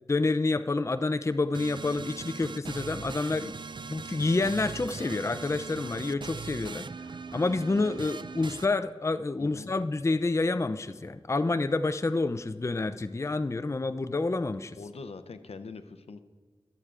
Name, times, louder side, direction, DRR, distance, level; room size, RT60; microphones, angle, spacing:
voice 1, 0.1-3.5 3.9-6.8 7.3-14.8, left 3 dB, 30° left, 11 dB, 0.4 m, -28 dB
sound 1, 1.5-8.7, right 4 dB, 50° right, 0.4 m, -40 dB
voice 2, 9.4-9.7 14.8-16.2, left 4 dB, 80° left, 10 dB, 0.6 m, -43 dB
22.0 x 8.0 x 2.5 m, 1.5 s
cardioid pair, 40°, 10 cm